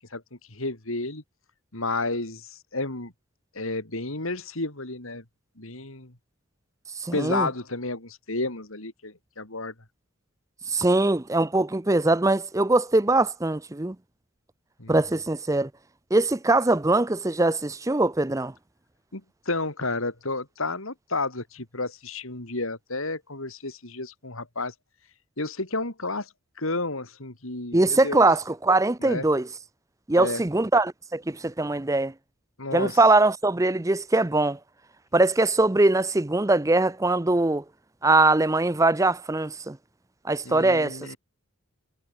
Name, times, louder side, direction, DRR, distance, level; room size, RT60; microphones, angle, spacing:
voice 1, 0.5-1.2 1.7-3.1 3.5-5.2 5.6-6.1 7.1-9.7 14.8-14.9 19.1-24.7 25.4-28.3 29.0-29.3 30.2-30.4 32.6-33.0 40.5-41.2, left 2 dB, 75° left, 3.9 m, -31 dB
voice 2, 7.0-7.5 10.7-14.0 14.9-15.7 16.1-18.5 27.7-29.5 30.1-32.1 32.7-34.6 35.1-37.6 38.0-39.8 40.2-41.1, right 2 dB, 15° right, 0.6 m, -22 dB
head